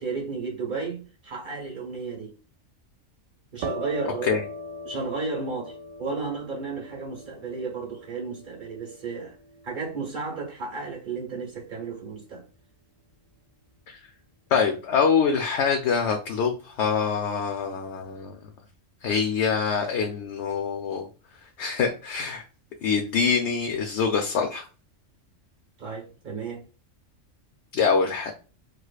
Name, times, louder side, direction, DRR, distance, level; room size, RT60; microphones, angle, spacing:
voice 1, 0.0-2.3 3.5-4.4 4.8-9.4 9.6-12.4 25.8-26.6, right 4 dB, 40° right, 1.2 m, -33 dB
sound 1, 3.6-11.1, equal, 90° right, 1.0 m, -41 dB
voice 2, 14.5-18.4 19.0-21.1 21.6-22.4 22.8-24.7 27.7-28.3, left 6 dB, 70° left, 0.8 m, -25 dB
4.6 x 2.4 x 2.3 m
omnidirectional pair, 1.3 m